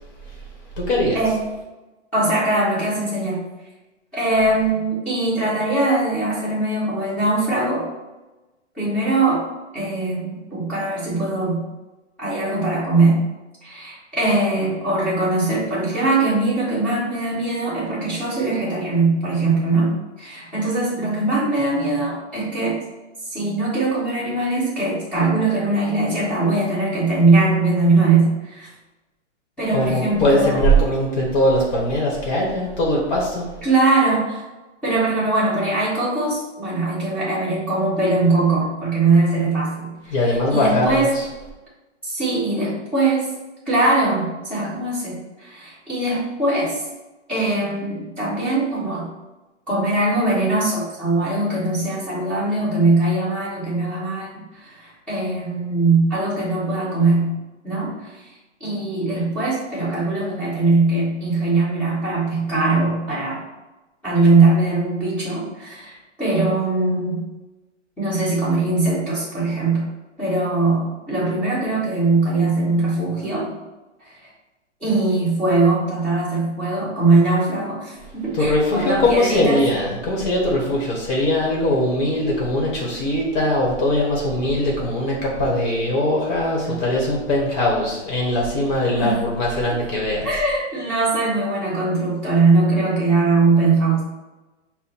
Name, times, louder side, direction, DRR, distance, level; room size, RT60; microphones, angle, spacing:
voice 1, 0.8-1.2 29.7-33.5 40.1-41.2 78.3-90.3, left 1 dB, 35° left, -2 dB, 1.2 m, -21 dB
voice 2, 2.1-3.4 4.1-7.9 8.7-9.5 9.7-11.7 12.2-13.3 13.6-22.8 23.3-28.7 29.6-30.6 33.6-34.4 34.8-40.1 40.5-41.1 42.0-43.3 43.7-46.8 47.3-49.1 49.7-57.4 57.6-58.2 58.6-63.4 64.0-67.3 68.0-69.9 70.2-73.6 74.0-74.1 74.8-79.6 86.6-86.8 88.9-89.2 90.2-94.0, right 2 dB, 5° left, -12 dB, 1.5 m, -21 dB
5.6 x 2.2 x 4.2 m, 1.1 s
hypercardioid pair, 145°, 37 cm